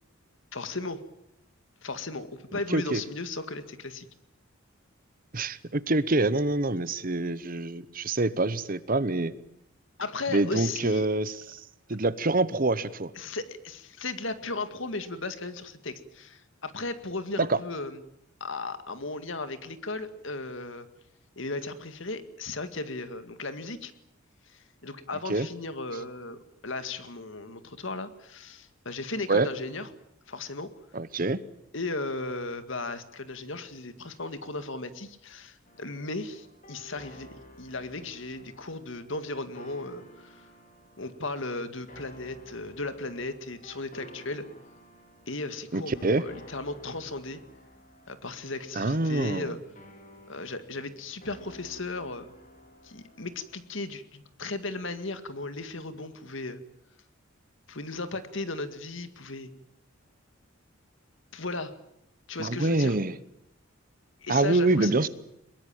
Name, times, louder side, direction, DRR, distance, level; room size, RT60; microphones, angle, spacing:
voice 1, 0.5-1.0 1.8-4.1 10.0-11.1 13.2-18.0 18.4-20.9 21.4-23.9 24.5-29.9 30.3-30.7 31.7-40.5 41.0-44.5 45.3-47.4 48.1-49.6 50.3-52.3 52.8-56.6 57.7-59.5 61.3-61.7 62.3-63.0 64.2-65.1, left 3 dB, 65° left, 2.0 m, -36 dB
voice 2, 5.3-9.3 10.3-11.6 11.9-13.1 17.4-17.6 25.3-25.5 29.3-29.5 30.9-31.4 45.7-46.2 48.8-49.5 62.4-63.1 64.3-65.1, right 2 dB, 40° right, 1.0 m, -26 dB
sound 1, 35.6-53.6, equal, 40° left, 4.6 m, -53 dB
22.5 x 21.5 x 8.9 m
head